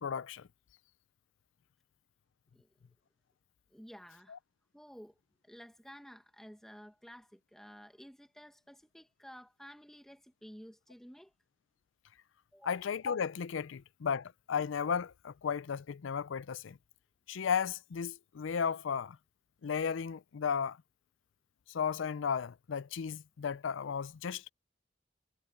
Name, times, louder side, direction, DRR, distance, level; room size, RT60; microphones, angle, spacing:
voice 1, 0.0-0.5 4.3-4.4 12.6-16.8 17.3-19.2 19.6-20.8 21.7-24.4, left 6 dB, 80° left, 0.4 m, -34 dB
voice 2, 3.7-4.4 4.7-5.2 5.4-11.3 12.5-12.8, equal, ahead, 1.6 m, -53 dB
head